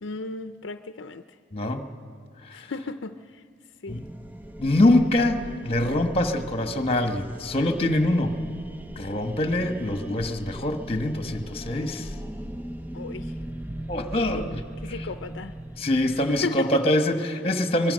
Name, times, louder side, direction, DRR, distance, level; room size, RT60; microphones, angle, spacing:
voice 1, 0.0-1.2 2.5-3.2 3.8-4.0 12.9-13.3 14.3-14.6 14.8-15.5 16.3-16.8, left 3 dB, 70° left, 9 dB, 0.6 m, -34 dB
voice 2, 1.5-1.9 2.5-2.7 3.9-4.1 4.6-8.4 9.0-12.1 13.9-14.6 14.9-15.1 15.8-17.9, left 1 dB, 30° left, 7 dB, 1.4 m, -24 dB
sound 1, 3.9-16.5, right 1 dB, 10° right, 0.6 m, -39 dB
24.5 x 21.0 x 6.6 m, 2.1 s
head